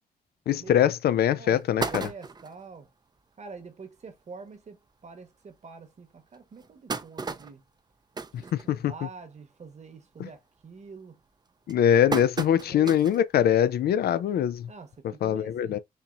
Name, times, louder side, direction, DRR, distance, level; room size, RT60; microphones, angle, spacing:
voice 1, 0.5-2.1 8.7-8.9 10.2-10.3 11.7-14.7 15.2-15.8, left 10 dB, 80° left, 0.4 m, -23 dB
sound 1, 0.7-0.8 1.2-1.3 1.6-2.6 3.2-3.3 3.6-3.7 4.0-4.2 4.9-5.0 5.5-5.6 6.3-9.2 9.5-9.9 10.2-10.6 11.2-13.3 13.7-13.8 15.0-15.1, right 4 dB, 25° right, 0.4 m, -35 dB
voice 2, 1.3-2.9 3.4-7.6 8.4-8.5 8.9-11.2 12.6-13.0 14.7-15.8, right 4 dB, 45° right, 1.1 m, -46 dB
4.4 x 2.7 x 2.5 m
cardioid pair, 70°, 16 cm